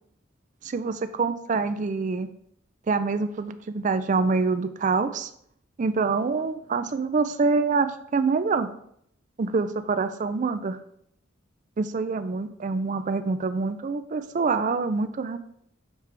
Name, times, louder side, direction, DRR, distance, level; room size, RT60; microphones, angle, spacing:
voice 1, 0.6-2.3 2.9-5.3 5.8-8.7 9.4-10.8 11.8-15.4, right 4 dB, 40° right, 11 dB, 0.4 m, -26 dB
6.6 x 4.7 x 3.3 m, 0.70 s
head